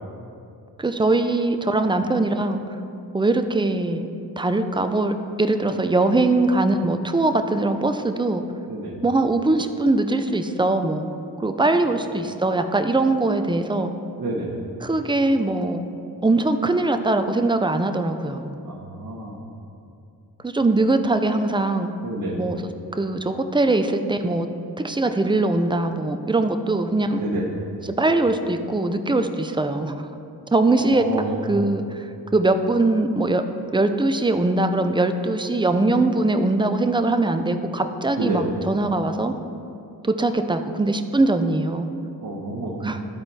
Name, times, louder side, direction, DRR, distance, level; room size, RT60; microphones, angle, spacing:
voice 1, 0.8-2.8 3.1-4.1 4.4-8.4 9.0-11.1 11.4-13.9 14.8-15.8 16.2-18.5 20.4-21.9 22.4-22.6 22.9-24.5 24.8-27.2 27.8-29.9 30.5-32.1 32.3-33.4 33.7-39.3 40.0-41.9 42.8-43.0, right 2 dB, 10° right, 7 dB, 0.5 m, -21 dB
voice 2, 14.2-14.5 18.6-19.4 22.0-22.4 27.2-27.4 30.7-31.3 38.2-38.4 42.2-42.8, right 2 dB, 50° right, -4 dB, 1.3 m, -29 dB
12.0 x 4.4 x 4.2 m, 2.6 s
cardioid pair, 50°, 41 cm